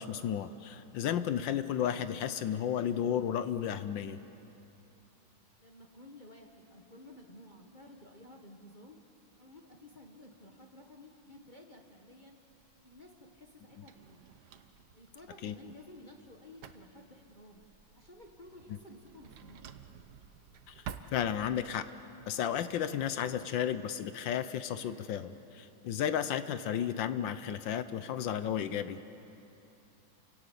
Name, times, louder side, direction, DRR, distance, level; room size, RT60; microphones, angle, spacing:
voice 1, 0.0-4.2 15.4-15.5 20.7-20.8 21.1-21.8 22.3-29.0, left 9 dB, 75° left, 12 dB, 1.4 m, -33 dB
voice 2, 5.6-9.0 9.4-12.4 12.8-14.4 14.9-17.6 17.9-19.7, left 1 dB, 25° left, 1 dB, 1.4 m, -54 dB
Drawer open or close, 12.5-21.8, right 7 dB, 60° right, 1.3 m, -52 dB
28.0 x 17.5 x 8.4 m, 2.9 s
omnidirectional pair, 2.2 m